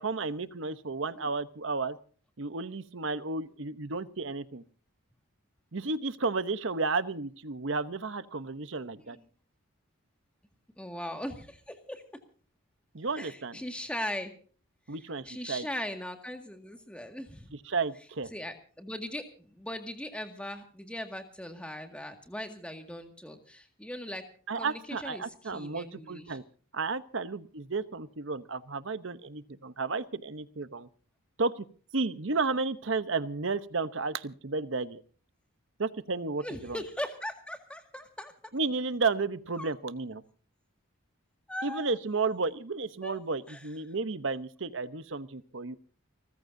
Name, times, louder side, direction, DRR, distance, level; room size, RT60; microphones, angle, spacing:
voice 1, 0.0-2.0 2.4-4.6 5.7-9.2 12.9-13.6 14.9-15.7 17.5-18.3 24.5-26.4 26.7-30.9 31.4-31.6 31.9-35.0 35.8-36.8 38.5-40.2 41.6-45.8, right 4 dB, 55° right, 13 dB, 0.9 m, -32 dB
voice 2, 10.8-12.0 13.2-14.3 15.3-17.5 18.3-24.2 24.5-26.4 36.4-38.3 39.6-39.7 41.5-41.9 43.0-43.2 43.5-43.6, left 1 dB, 5° left, 5 dB, 1.9 m, -39 dB
30.0 x 14.5 x 2.7 m, 0.42 s
head